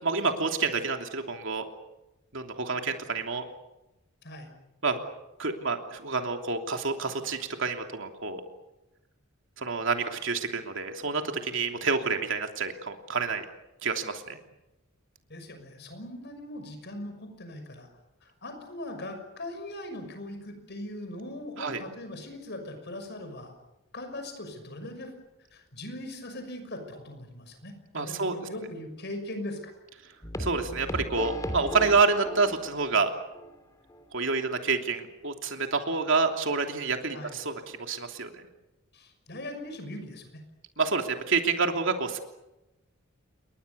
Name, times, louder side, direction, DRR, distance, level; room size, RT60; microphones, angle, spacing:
voice 1, 0.0-1.6 2.3-3.5 4.8-5.0 5.4-8.4 9.6-13.4 13.8-14.4 21.6-21.8 27.9-28.4 30.4-33.1 34.1-38.4 40.8-42.2, right 4 dB, 65° right, 4 dB, 3.0 m, -28 dB
voice 2, 4.2-4.5 15.3-17.9 18.2-23.6 23.9-25.1 25.5-29.7 37.1-37.4 38.9-40.4, left 1 dB, 55° left, 7 dB, 6.1 m, -40 dB
sound 1, 30.2-33.0 33.4-33.5 33.9-34.0, equal, 15° left, 3.1 m, -36 dB
29.0 x 22.5 x 6.9 m, 0.96 s
head